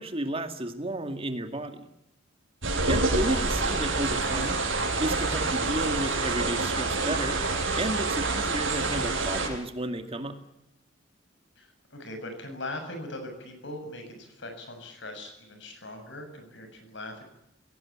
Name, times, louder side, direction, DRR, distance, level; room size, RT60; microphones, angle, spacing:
voice 1, 0.0-1.9 2.9-4.6 5.0-7.4 7.7-10.4, right 1 dB, 30° right, 6 dB, 2.2 m, -32 dB
sound 1, 2.6-9.5, right 3 dB, 75° right, 5.8 m, -27 dB
voice 2, 11.6-17.2, left 1 dB, 65° left, 6 dB, 7.2 m, -40 dB
22.5 x 18.0 x 10.0 m, 0.81 s
head